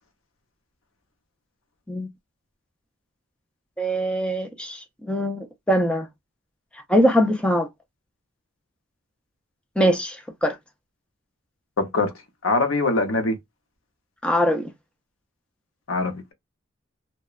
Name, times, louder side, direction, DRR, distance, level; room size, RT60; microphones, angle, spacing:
voice 1, 3.8-6.1 6.9-7.7 9.8-10.6 14.2-14.7, equal, 5° left, 0.4 m, -22 dB
voice 2, 11.8-12.1 12.4-13.4 15.9-16.3, left 3 dB, 80° left, 0.7 m, -23 dB
2.8 x 2.1 x 2.3 m
head